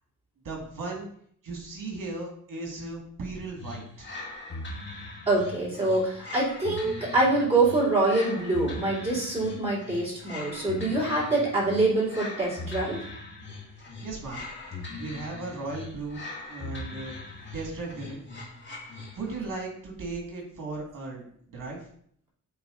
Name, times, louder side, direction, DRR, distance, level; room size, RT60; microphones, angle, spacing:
voice 1, 0.4-1.1 1.4-4.1 14.0-14.5 15.0-16.2 16.5-17.2 17.5-18.2 19.1-21.8, right 3 dB, 80° right, -1 dB, 2.2 m, -36 dB
sound 1, 3.6-19.5, left 2 dB, 35° left, 1.9 m, -40 dB
voice 2, 5.3-13.0, right 2 dB, 20° right, -8 dB, 2.8 m, -25 dB
8.0 x 3.6 x 3.8 m, 0.63 s
wide cardioid pair, 120°, 31 cm